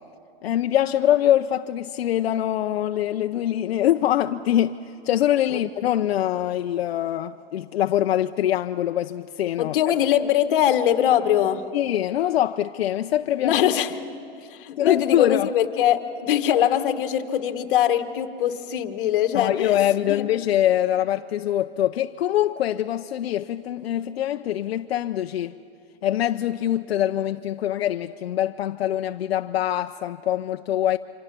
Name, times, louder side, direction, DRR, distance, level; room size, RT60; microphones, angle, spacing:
voice 1, 0.4-4.8 5.0-9.7 11.7-13.5 14.8-15.5 19.3-25.5 26.0-31.0, left 12 dB, 85° left, 0.7 m, -23 dB
voice 2, 9.6-11.6 13.4-14.0 14.5-19.7 20.1-20.3, left 10 dB, 60° left, 1.4 m, -22 dB
26.0 x 26.0 x 6.0 m
supercardioid pair, 165°, 30 cm